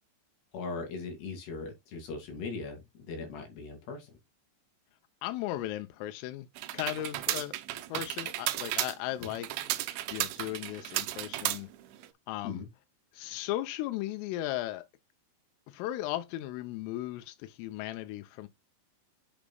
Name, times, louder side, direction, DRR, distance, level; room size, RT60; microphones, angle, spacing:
voice 1, 0.5-4.1 9.2-9.3 12.4-12.7, left 4 dB, 60° left, 4.1 m, -39 dB
voice 2, 5.2-6.5 6.7-9.5 10.1-11.7 12.3-12.6 13.1-14.8 15.7-18.5, left 14 dB, 85° left, 3.3 m, -36 dB
sound 1, 6.6-12.1, right 15 dB, 80° right, 2.9 m, -34 dB
8.7 x 6.1 x 2.2 m
omnidirectional pair, 5.9 m